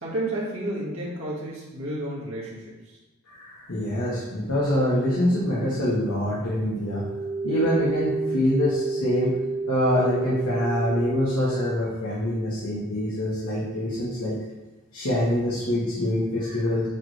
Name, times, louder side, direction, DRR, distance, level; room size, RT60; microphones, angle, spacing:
voice 1, 0.0-3.0, right 1 dB, 65° right, -6 dB, 2.0 m, -31 dB
voice 2, 3.3-7.0 7.4-9.3 9.7-14.3 14.9-16.9, left 1 dB, 75° left, -8 dB, 1.5 m, -25 dB
sound 1, 6.8-11.7, right 3 dB, 5° left, 1.0 m, -29 dB
8.5 x 3.4 x 3.3 m, 1.2 s
head